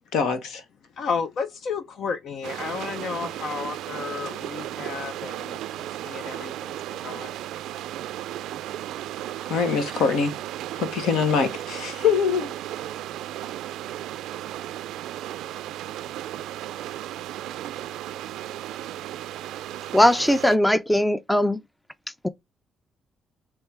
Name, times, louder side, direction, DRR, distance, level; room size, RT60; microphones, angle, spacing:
voice 1, 0.1-0.6 9.5-10.3 10.7-12.5, left 6 dB, 80° left, 1.0 m, -23 dB
voice 2, 1.0-7.3, left 5 dB, 65° left, 0.6 m, -32 dB
sound 1, 2.4-20.6, right 13 dB, 85° right, 0.3 m, -35 dB
voice 3, 19.9-21.6 22.2-22.3, left 1 dB, 10° left, 0.4 m, -19 dB
4.4 x 3.2 x 3.4 m
cardioid pair, 90°, 0 cm